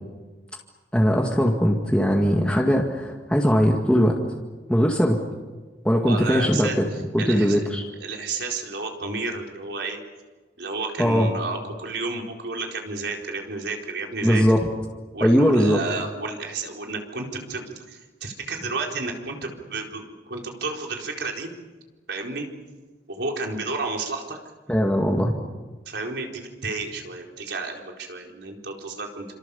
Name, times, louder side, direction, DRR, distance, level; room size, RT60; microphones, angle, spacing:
voice 1, 0.9-4.2 4.7-5.2 5.8-6.9 7.1-7.9 11.0-11.3 14.2-14.7 15.2-15.8 24.7-25.3, equal, 5° left, -1 dB, 2.1 m, -20 dB
voice 2, 6.1-6.8 7.2-7.6 8.0-10.0 10.6-14.4 15.1-21.5 22.1-22.5 23.1-24.4 25.9-29.2, right 3 dB, 75° right, 1 dB, 4.4 m, -31 dB
28.5 x 26.5 x 7.1 m, 1.3 s
head